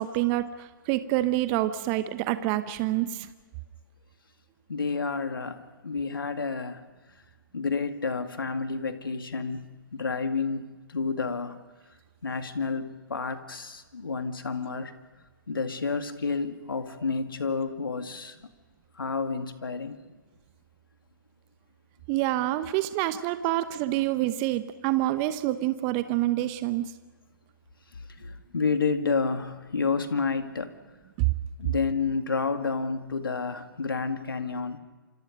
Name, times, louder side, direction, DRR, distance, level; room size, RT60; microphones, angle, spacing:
voice 1, 0.0-3.3 22.1-26.8 31.2-31.3, right 15 dB, 25° right, 12 dB, 1.0 m, -27 dB
voice 2, 4.7-6.8 7.5-9.7 9.9-11.6 12.2-14.9 15.5-18.4 19.0-20.0 28.2-30.7 31.6-34.8, left 4 dB, 75° left, 7 dB, 2.2 m, -30 dB
28.0 x 26.0 x 5.2 m, 1.3 s
figure-of-eight pair, 130°, 12 cm